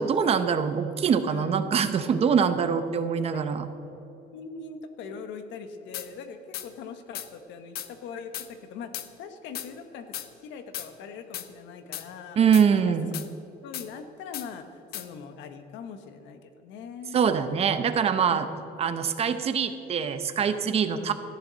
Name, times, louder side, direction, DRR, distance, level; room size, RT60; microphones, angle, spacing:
voice 1, 0.0-3.6 12.4-13.1 17.1-18.5 18.8-21.1, right 7 dB, 35° right, 10 dB, 0.8 m, -24 dB
voice 2, 4.3-8.9 9.2-10.1 10.4-12.4 12.7-12.9 13.6-17.2 18.2-18.8 20.9-21.1, left 6 dB, 90° left, 8 dB, 1.4 m, -41 dB
sound 1, 5.9-6.1 6.5-6.7 7.1-7.3 7.8-7.9 8.3-8.5 8.9-9.1 9.5-9.7 10.1-10.3 10.7-10.9 11.3-11.5 11.9-12.1 12.5-12.7 13.1-13.3 13.7-13.9 14.3-14.5 14.9-15.1, left 12 dB, 60° left, 0.9 m, -36 dB
17.5 x 14.0 x 4.1 m, 2.9 s
cardioid pair, 165°, 18 cm